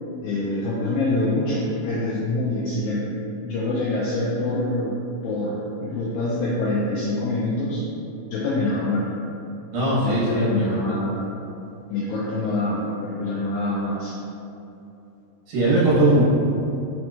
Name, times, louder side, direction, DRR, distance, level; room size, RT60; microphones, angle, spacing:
voice 1, 0.2-5.0 5.2-7.9 8.3-9.2 10.0-11.3 11.9-14.1, left 2 dB, 80° left, -6 dB, 1.7 m, -25 dB
voice 2, 9.7-11.0 15.5-16.2, right 1 dB, 65° right, -8 dB, 2.0 m, -20 dB
5.1 x 2.9 x 2.3 m, 2.8 s
omnidirectional pair, 3.8 m